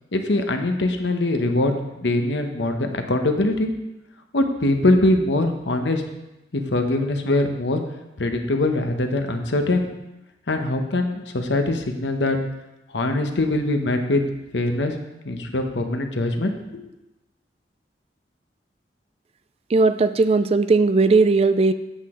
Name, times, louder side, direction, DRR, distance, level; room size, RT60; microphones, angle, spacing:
voice 1, 0.1-3.7 4.3-6.0 6.5-7.8 8.2-9.9 10.5-12.4 12.9-14.2 14.5-14.9 15.2-16.9, left 2 dB, 75° left, 5 dB, 1.0 m, -22 dB
voice 2, 19.7-21.7, right 3 dB, 35° right, 11 dB, 0.3 m, -17 dB
8.2 x 7.8 x 3.7 m, 0.96 s
head